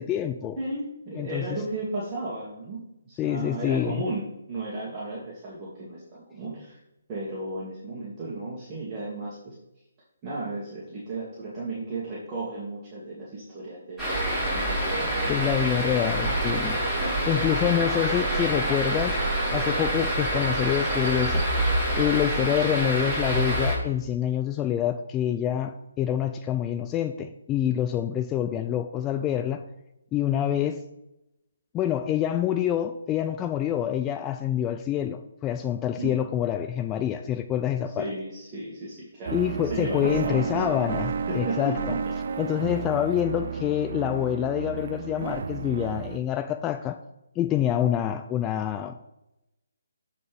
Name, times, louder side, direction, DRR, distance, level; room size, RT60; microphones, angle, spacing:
voice 1, 0.0-0.6 1.2-1.4 3.2-4.0 15.3-16.8 17.3-19.2 19.5-21.4 22.0-29.6 30.1-30.8 31.7-38.1 39.3-42.0 42.4-47.0 47.4-48.9, left 10 dB, 15° left, 7 dB, 0.4 m, -26 dB
voice 2, 0.6-6.8 7.1-9.5 10.2-15.8 16.9-17.5 36.0-36.2 38.0-39.4 39.6-40.5 41.3-42.0, right 2 dB, 20° right, -7 dB, 2.1 m, -35 dB
sound 1, 14.0-23.7, right 1 dB, 5° right, 3.2 m, -26 dB
sound 2, 39.3-46.2, right 6 dB, 50° right, 0.6 m, -32 dB
12.5 x 4.3 x 3.6 m, 0.88 s
hypercardioid pair, 160°, 0 cm